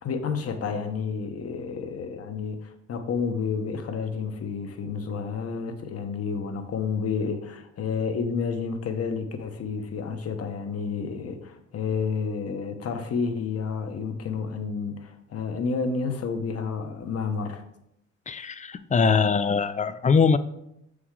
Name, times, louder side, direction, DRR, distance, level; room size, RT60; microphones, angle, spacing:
voice 1, 0.0-17.6, left 5 dB, 50° left, 7 dB, 1.0 m, -30 dB
voice 2, 18.3-20.4, left 5 dB, 25° left, 13 dB, 0.4 m, -22 dB
6.8 x 4.8 x 3.7 m, 0.80 s
cardioid pair, 90°, 30 cm